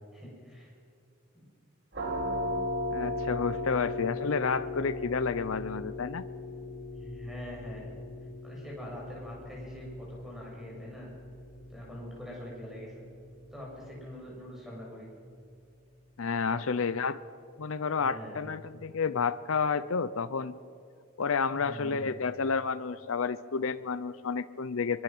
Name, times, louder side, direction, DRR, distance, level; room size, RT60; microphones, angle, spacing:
voice 1, 0.1-0.7 1.3-1.5 2.0-2.1 6.9-8.0 8.4-11.1 11.7-13.0 13.5-15.1 16.4-16.6 18.0-18.5 21.5-22.1, equal, ahead, -3 dB, 6.9 m, -44 dB
sound 1, 1.9-13.4, left 2 dB, 50° right, 3.4 m, -37 dB
voice 2, 2.9-6.2 16.2-17.2 17.6-20.6 21.2-25.0, left 5 dB, 70° left, 14 dB, 0.6 m, -30 dB
23.5 x 23.0 x 6.1 m, 2.5 s
head